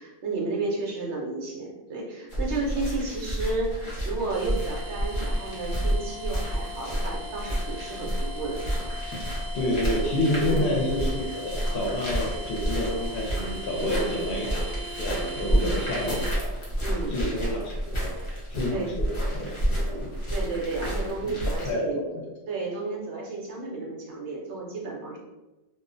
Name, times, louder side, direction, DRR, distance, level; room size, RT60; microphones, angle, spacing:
voice 1, 0.0-8.6 10.4-10.8 13.8-14.1 15.5-15.8 16.8-17.2 18.2-18.3 18.7-18.9 20.3-22.0 22.5-25.2, right 3 dB, 80° right, -2 dB, 0.9 m, -32 dB
sound 1, 2.3-21.7, equal, 35° left, 0.6 m, -30 dB
sound 2, 4.3-16.3, left 1 dB, 60° right, 0.5 m, -40 dB
voice 2, 9.5-16.6 17.1-18.1 18.5-19.5 19.8-20.1 21.2-22.2, left 1 dB, 65° left, -2 dB, 0.7 m, -29 dB
2.3 x 2.1 x 2.5 m, 1.0 s
omnidirectional pair, 1.1 m